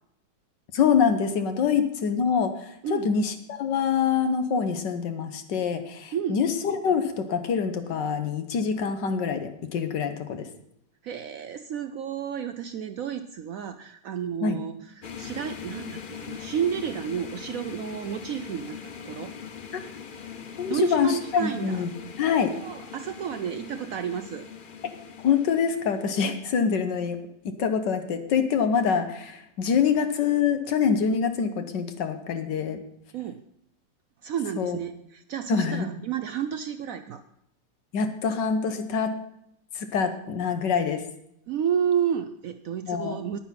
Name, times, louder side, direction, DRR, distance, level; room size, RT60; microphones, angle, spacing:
voice 1, 0.7-10.5 14.4-14.6 19.7-19.8 20.6-21.9 22.2-22.6 24.8-25.0 25.2-27.2 27.4-32.8 34.6-34.8 35.5-35.9 37.9-39.2 39.8-41.0 42.8-43.2, left 6 dB, 75° left, 8 dB, 1.7 m, -25 dB
voice 2, 6.1-6.4 11.0-18.8 19.0-19.7 20.7-21.8 22.6-24.5 33.1-33.4 34.2-37.2 41.5-43.4, right 8 dB, 70° right, 10 dB, 0.8 m, -31 dB
sound 1, 15.0-26.3, left 7 dB, 60° left, 0.5 m, -41 dB
9.9 x 9.5 x 5.7 m, 0.76 s
omnidirectional pair, 1.9 m